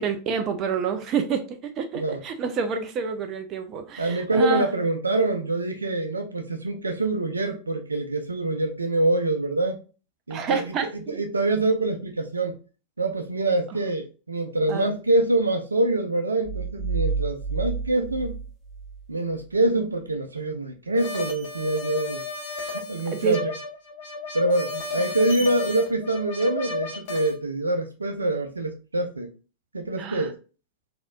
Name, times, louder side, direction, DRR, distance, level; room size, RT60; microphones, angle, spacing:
voice 1, 0.0-4.7 10.3-11.2 14.7-14.9 23.1-23.4 30.0-30.3, right 6 dB, 35° right, 0.5 m, -28 dB
voice 2, 4.0-9.8 10.3-10.6 11.2-12.6 13.0-18.4 19.1-22.2 22.6-23.5 24.3-29.3 29.7-30.3, right 2 dB, 80° right, 0.6 m, -25 dB
sound 1, 16.4-19.1, right 5 dB, 15° left, 1.4 m, -30 dB
sound 2, 21.0-27.3, left 3 dB, 50° left, 1.1 m, -33 dB
3.9 x 2.9 x 2.4 m
figure-of-eight pair, 90°, 0 cm